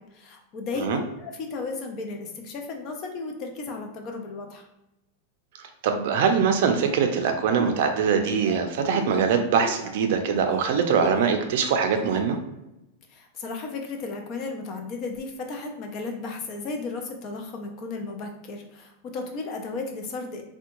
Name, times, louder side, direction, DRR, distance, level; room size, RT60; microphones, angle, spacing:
voice 1, 0.0-4.7 13.1-20.4, left 3 dB, 30° left, 3 dB, 0.5 m, -34 dB
voice 2, 5.8-12.4, right 6 dB, 55° right, 5 dB, 0.4 m, -23 dB
Laughter, 7.6-11.4 11.9-12.3, right 1 dB, 5° left, 0.8 m, -37 dB
3.4 x 2.2 x 2.9 m, 0.91 s
supercardioid pair, 165°, 0 cm